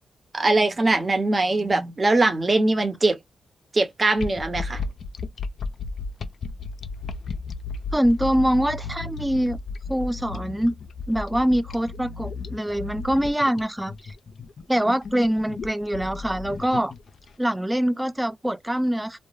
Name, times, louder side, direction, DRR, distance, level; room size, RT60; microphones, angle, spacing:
voice 1, 0.3-3.2 3.7-4.8, right 2 dB, 40° right, 0.8 m, -21 dB
sound 1, 4.2-17.3, left 4 dB, 65° left, 0.3 m, -34 dB
voice 2, 7.9-9.6 9.9-10.7 11.1-14.1 14.7-16.9 17.4-19.2, equal, 10° right, 0.4 m, -24 dB
2.1 x 2.1 x 3.1 m
supercardioid pair, 40°, 0 cm